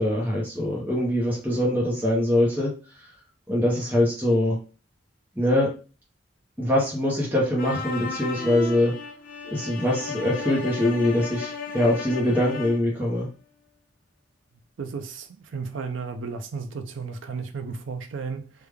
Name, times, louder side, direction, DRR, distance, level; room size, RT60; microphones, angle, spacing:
voice 1, 0.0-2.7 3.5-4.6 5.4-5.7 6.6-8.9 9.4-13.3, left 1 dB, 10° right, 0.7 m, -23 dB
sound 1, 7.6-12.9, left 5 dB, 50° left, 0.7 m, -34 dB
voice 2, 14.8-18.5, right 5 dB, 90° right, 0.4 m, -34 dB
3.3 x 2.2 x 3.4 m
head